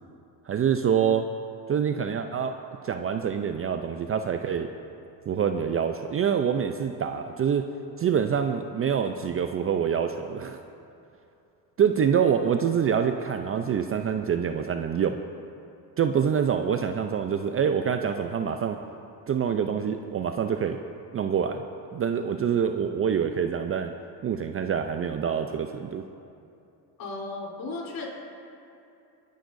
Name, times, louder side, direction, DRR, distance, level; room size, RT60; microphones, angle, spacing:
voice 1, 0.5-1.3 1.7-2.5 2.8-4.7 5.3-7.7 8.0-10.6 11.8-15.2 16.0-18.8 19.3-20.8 21.1-21.6 21.9-23.9 24.2-26.0, right 7 dB, 30° right, 7 dB, 0.6 m, -26 dB
voice 2, 27.0-28.1, left 3 dB, 45° left, -2 dB, 3.7 m, -35 dB
26.0 x 10.5 x 2.7 m, 2.7 s
supercardioid pair, 85°, 49 cm